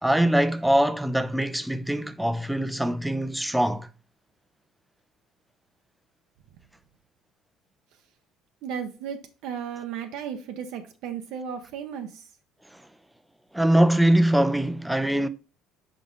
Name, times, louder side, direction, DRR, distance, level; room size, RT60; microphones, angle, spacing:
voice 1, 0.0-3.9 13.5-15.3, right 1 dB, 5° right, 0.4 m, -22 dB
voice 2, 8.6-12.3, right 7 dB, 70° right, 0.7 m, -35 dB
5.3 x 4.8 x 3.8 m
cardioid pair, 135°, 0 cm